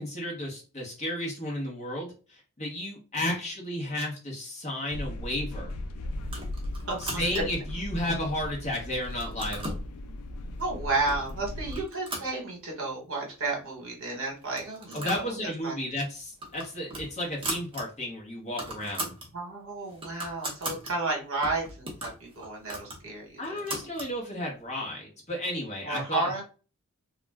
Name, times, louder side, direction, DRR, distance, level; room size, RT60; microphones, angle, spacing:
voice 1, 0.0-5.7 7.0-9.7 14.9-19.1 23.4-26.3, left 1 dB, 30° left, -2 dB, 0.9 m, -33 dB
sound 1, 4.9-11.8, left 1 dB, 80° left, 0.4 m, -37 dB
sound 2, 6.2-7.7 8.2-8.7 9.0-9.9 10.6-10.7 11.1-11.3 11.7-12.9 13.3-13.4 13.6-13.7 14.4-15.3 15.6-15.8 16.2-17.8 18.2-18.3 18.5-19.3 19.7-20.9 21.4-24.1, right 2 dB, 25° right, 0.7 m, -38 dB
voice 2, 6.9-7.4 10.6-15.7 19.3-23.4 25.8-26.4, right 3 dB, 60° right, 0 dB, 1.0 m, -32 dB
2.4 x 2.1 x 3.3 m, 0.36 s
head